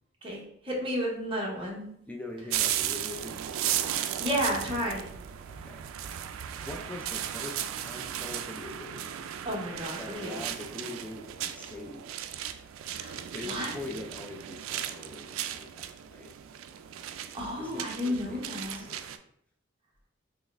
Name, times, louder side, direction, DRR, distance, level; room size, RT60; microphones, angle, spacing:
voice 1, 0.2-1.9 4.2-5.1 9.4-10.4 12.9-13.2 13.4-13.7 17.3-18.8, equal, 25° right, -2 dB, 0.9 m, -32 dB
voice 2, 2.1-3.4 5.4-5.9 6.6-9.1 10.0-12.1 13.2-16.3 17.6-19.0, left 2 dB, 5° left, 0 dB, 0.3 m, -43 dB
sound 1, 2.5-19.2, right 10 dB, 90° right, 0.3 m, -36 dB
4.0 x 3.2 x 2.4 m, 0.66 s
head